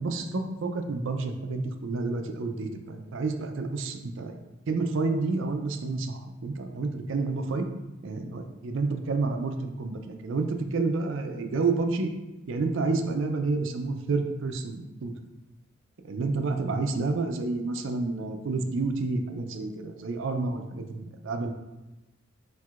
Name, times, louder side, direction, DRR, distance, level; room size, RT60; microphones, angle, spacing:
voice 1, 0.0-4.4 4.7-7.6 8.0-12.1 12.5-15.1 16.0-21.5, right 3 dB, 70° right, 6 dB, 0.4 m, -29 dB
4.5 x 4.2 x 2.4 m, 1.0 s
head